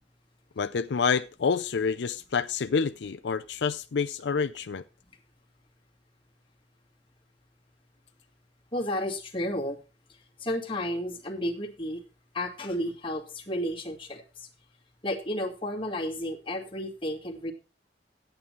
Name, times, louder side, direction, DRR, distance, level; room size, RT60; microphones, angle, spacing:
voice 1, 0.6-4.8, left 5 dB, 85° left, 0.5 m, -28 dB
voice 2, 8.7-9.8 10.4-12.0 12.3-14.5 15.0-17.5, left 1 dB, 30° left, 2.1 m, -32 dB
11.0 x 9.0 x 4.5 m
head